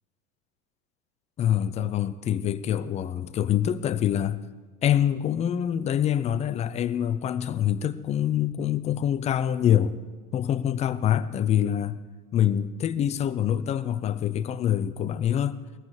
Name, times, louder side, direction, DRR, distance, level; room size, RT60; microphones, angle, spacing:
voice 1, 1.4-4.4 4.8-10.0 10.3-12.0 12.3-15.6, left 10 dB, 15° left, 0.4 m, -25 dB
19.0 x 14.5 x 4.8 m
figure-of-eight pair, 80°, 48 cm